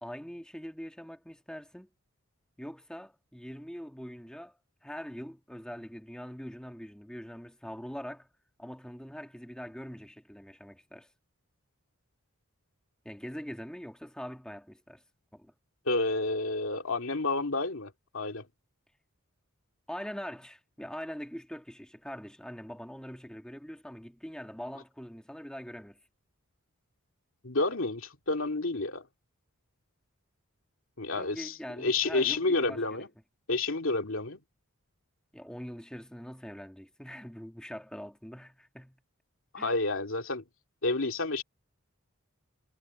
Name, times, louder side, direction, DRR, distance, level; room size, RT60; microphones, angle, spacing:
voice 1, 0.0-1.9 2.6-8.3 8.6-11.1 13.1-15.0 15.3-15.5 19.9-26.0 31.1-32.9 35.3-39.0 39.6-39.8, equal, 5° left, 1.7 m, -43 dB
voice 2, 15.9-18.5 27.4-29.1 31.0-33.1 33.5-34.4 39.5-40.4 40.8-41.4, left 3 dB, 65° left, 2.4 m, -30 dB
head